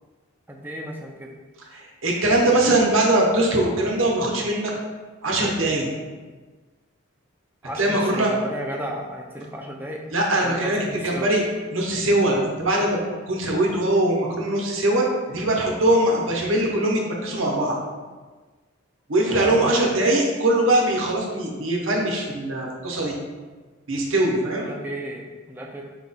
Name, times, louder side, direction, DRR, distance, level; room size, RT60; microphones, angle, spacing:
voice 1, 0.5-1.3 7.6-10.0 10.4-11.3 19.2-19.9 24.5-25.8, equal, 10° right, 0 dB, 0.4 m, -34 dB
voice 2, 1.7-4.7 5.2-5.9 7.8-8.3 10.1-10.8 11.0-11.4 11.7-13.0 13.3-17.8 19.1-23.1 23.9-24.7, right 1 dB, 65° right, -1 dB, 0.8 m, -21 dB
4.7 x 2.3 x 3.9 m, 1.3 s
head